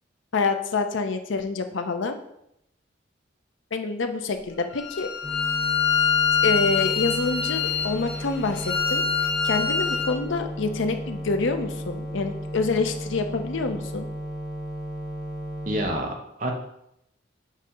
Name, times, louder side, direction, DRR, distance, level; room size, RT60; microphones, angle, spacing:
voice 1, 0.3-2.2 3.7-5.1 6.4-14.1, left 4 dB, 80° left, 7 dB, 0.6 m, -27 dB
Bowed string instrument, 4.7-10.1, left 6 dB, 55° left, 1.0 m, -25 dB
sound 1, 5.2-15.9, equal, 20° left, 0.9 m, -34 dB
voice 2, 15.7-16.5, right 1 dB, 40° right, 1 dB, 0.9 m, -28 dB
7.3 x 2.8 x 5.0 m, 0.78 s
head